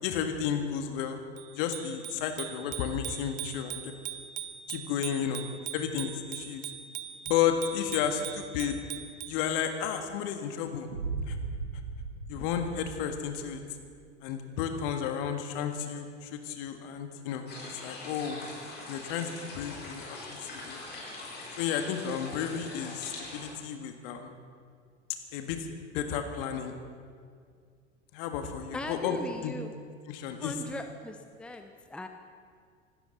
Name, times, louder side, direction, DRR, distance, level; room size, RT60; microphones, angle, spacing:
voice 1, 0.0-1.2 1.5-3.9 4.7-5.5 5.7-6.7 7.3-8.8 9.3-10.9 11.3-11.4 12.3-13.6 14.2-17.5 17.8-18.4 18.9-20.8 21.6-24.3 25.3-25.7 25.9-26.8 28.1-29.2 29.4-29.5 30.1-30.5, left 8 dB, 50° left, 6 dB, 1.9 m, -32 dB
Bicycle bell, 1.4-9.5, right 11 dB, 35° right, 0.9 m, -41 dB
sound 1, 10.9-13.9, right 4 dB, 80° right, 1.5 m, -37 dB
sound 2, 17.5-23.5, left 2 dB, 30° left, 5.6 m, -43 dB
voice 2, 28.7-29.7 30.4-32.1, left 1 dB, 5° left, 6 dB, 0.9 m, -39 dB
26.0 x 13.0 x 4.2 m, 2.1 s
figure-of-eight pair, 80°, 35 cm